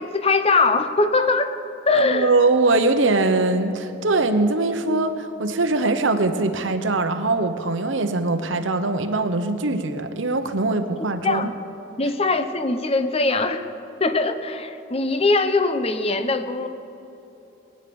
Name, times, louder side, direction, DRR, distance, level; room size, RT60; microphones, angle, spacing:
voice 1, 0.0-1.5 1.9-2.3 11.0-11.5 12.0-13.6 14.0-16.7, left 3 dB, 30° left, 9 dB, 0.8 m, -21 dB
voice 2, 1.9-11.5, right 2 dB, 75° right, 8 dB, 1.0 m, -22 dB
19.5 x 9.9 x 7.0 m, 3.0 s
head